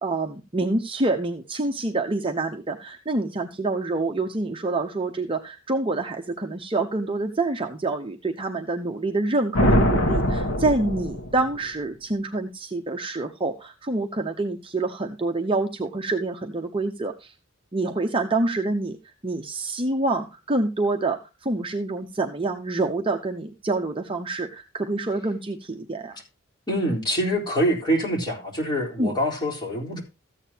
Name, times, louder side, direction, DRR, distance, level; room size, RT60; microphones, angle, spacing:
voice 1, 0.0-17.3 17.7-19.0 19.2-26.1 29.0-29.1, right 2 dB, 25° right, 0.8 m, -27 dB
sound 1, 9.5-11.7, equal, 85° left, 1.2 m, -22 dB
voice 2, 26.7-30.0, equal, 20° left, 4.0 m, -25 dB
14.0 x 8.8 x 2.9 m
head